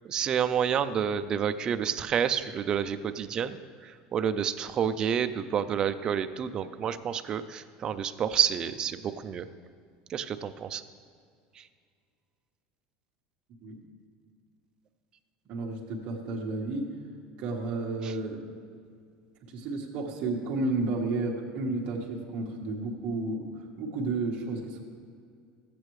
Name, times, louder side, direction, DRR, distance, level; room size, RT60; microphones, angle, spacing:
voice 1, 0.1-9.5 10.1-10.8 11.6-11.7, right 8 dB, 25° right, 10 dB, 0.3 m, -29 dB
voice 2, 15.5-16.9 17.4-18.4 19.4-23.5 23.8-24.8, right 3 dB, 40° right, -1 dB, 1.4 m, -32 dB
14.0 x 8.4 x 3.1 m, 2.2 s
cardioid pair, 175°, 3 cm